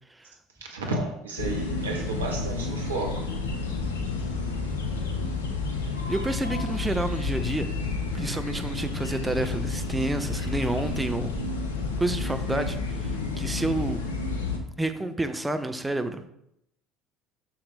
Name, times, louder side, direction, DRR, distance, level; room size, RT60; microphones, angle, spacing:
voice 1, 0.6-3.3, right 2 dB, 80° right, 1 dB, 1.6 m, -32 dB
sound 1, 1.4-14.6, left 4 dB, 80° left, 1.1 m, -30 dB
voice 2, 6.1-7.7 8.1-11.3 12.0-14.0 14.8-16.2, right 2 dB, 10° right, 8 dB, 0.9 m, -29 dB
7.2 x 6.9 x 3.5 m, 0.76 s
figure-of-eight pair, 65°, 0 cm